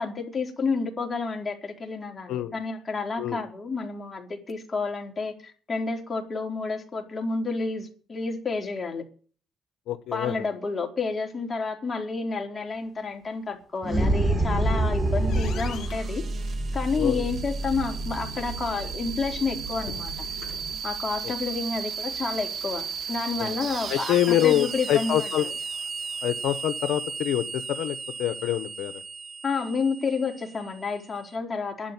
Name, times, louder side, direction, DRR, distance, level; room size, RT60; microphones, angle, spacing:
voice 1, 0.0-9.0 10.1-16.2 16.7-20.3 20.8-25.5 29.4-31.9, left 4 dB, 30° left, 2 dB, 4.0 m, -30 dB
voice 2, 9.9-10.4 17.0-17.3 21.2-21.3 23.4-23.6 23.9-25.4 26.2-29.0, left 12 dB, 85° left, 11 dB, 0.9 m, -26 dB
sound 1, 13.8-16.0, right 1 dB, 25° right, 5.7 m, -24 dB
sound 2, 14.2-20.7, left 2 dB, 70° left, 3.9 m, -42 dB
sound 3, 14.8-31.2, right 5 dB, 55° right, 1.5 m, -34 dB
11.5 x 8.9 x 9.5 m, 0.42 s
cardioid pair, 90°, 0 cm